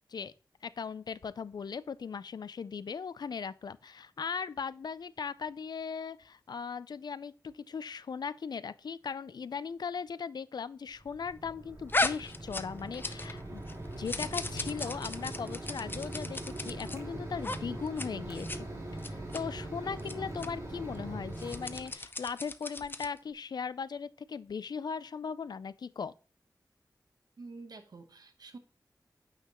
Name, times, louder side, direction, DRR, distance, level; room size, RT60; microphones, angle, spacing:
voice 1, 0.6-13.6 14.0-18.7 19.0-26.1, left 6 dB, 80° left, 0.4 m, -38 dB
Mechanisms, 11.0-21.9, right 1 dB, 45° right, 2.7 m, -41 dB
sound 1, 11.9-13.4 13.7-17.0 17.4-17.6 17.9-18.1 18.3-18.6 19.0-19.4 20.0-20.1 20.4-20.5 21.3-23.2, left 2 dB, 30° left, 0.5 m, -36 dB
voice 2, 27.4-28.6, right 3 dB, 70° right, 1.0 m, -48 dB
8.9 x 5.8 x 3.0 m
wide cardioid pair, 90°, 7 cm